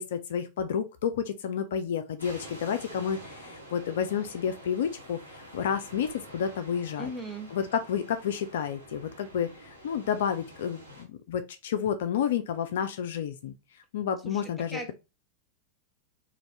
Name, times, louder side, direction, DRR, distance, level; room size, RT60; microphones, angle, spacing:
voice 1, 0.0-7.1 7.5-13.5 13.9-14.9, left 8 dB, 60° left, 0.3 m, -30 dB
sound 1, 2.2-11.0, right 1 dB, 85° right, 1.3 m, -48 dB
voice 2, 7.0-7.5 14.2-14.4 14.7-14.9, right 1 dB, ahead, 0.7 m, -37 dB
2.5 x 2.5 x 3.2 m
figure-of-eight pair, 90°, 0 cm